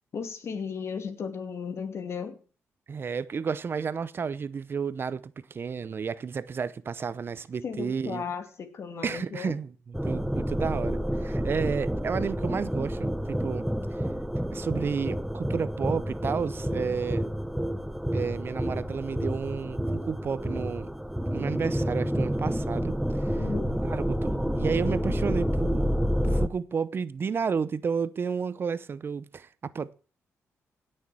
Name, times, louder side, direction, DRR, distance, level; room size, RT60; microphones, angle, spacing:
voice 1, 0.1-2.4 7.6-9.6 23.3-23.9, left 6 dB, 60° left, 2.7 m, -35 dB
voice 2, 2.9-8.2 9.0-13.7 14.5-17.3 18.1-20.9 21.3-22.9 23.2-23.4 23.7-25.9 26.2-30.0, right 6 dB, 45° right, 0.7 m, -32 dB
sound 1, 9.9-26.5, equal, 5° right, 0.8 m, -29 dB
17.0 x 6.6 x 7.6 m
cardioid pair, 95°, 5 cm